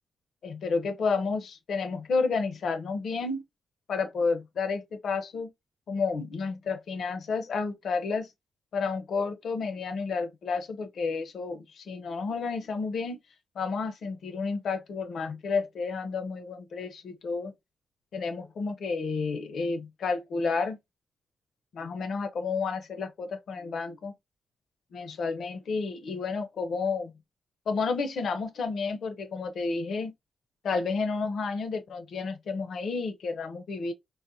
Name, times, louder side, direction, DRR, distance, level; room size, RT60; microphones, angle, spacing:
voice 1, 0.4-3.4 3.9-5.5 5.9-8.3 8.7-13.2 13.6-17.5 18.1-20.8 21.7-24.1 24.9-27.1 27.7-30.1 30.6-33.9, left 4 dB, 70° left, 0.6 m, -31 dB
3.9 x 2.1 x 2.6 m
cardioid pair, 100°, 0 cm